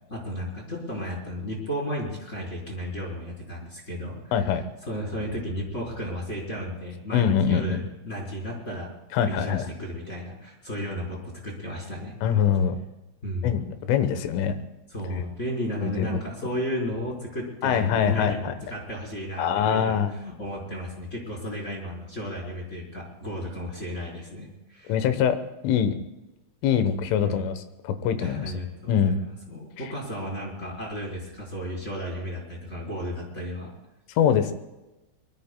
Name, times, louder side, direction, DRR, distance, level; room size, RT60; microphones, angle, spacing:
voice 1, 0.1-4.2 4.8-8.9 9.2-12.2 13.2-13.6 14.9-24.9 27.2-27.5 28.2-33.7, equal, 15° left, -3 dB, 3.8 m, -34 dB
voice 2, 4.3-4.7 7.1-7.8 9.1-9.7 12.2-12.8 13.4-14.6 15.1-15.3 15.8-16.2 17.6-18.6 19.4-20.1 24.9-25.4 25.6-26.0 26.6-27.5 27.9-28.5 28.9-29.2 34.2-34.5, left 8 dB, 75° left, 9 dB, 3.5 m, -23 dB
23.0 x 23.0 x 2.3 m, 1.0 s
omnidirectional pair, 5.9 m